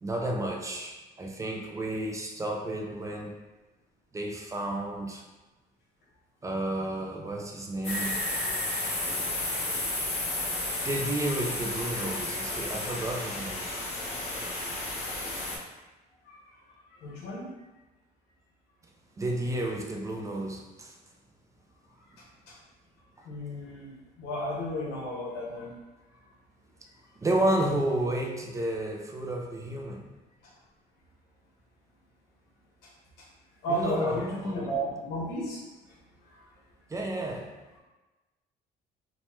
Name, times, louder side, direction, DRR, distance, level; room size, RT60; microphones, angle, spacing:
voice 1, 0.0-3.4 4.1-5.2 6.4-8.2 10.8-13.7 19.2-20.9 23.2-23.3 27.2-30.1 33.7-34.8 36.9-37.5, right 1 dB, 20° right, 1 dB, 0.3 m, -31 dB
sound 1, 7.8-15.6, left 2 dB, 40° left, 0.9 m, -32 dB
voice 2, 17.0-17.5 23.3-23.9 24.2-25.7 33.6-35.6, equal, 90° left, -4 dB, 0.9 m, -32 dB
3.0 x 2.1 x 3.0 m, 1.1 s
cardioid pair, 110°, 17 cm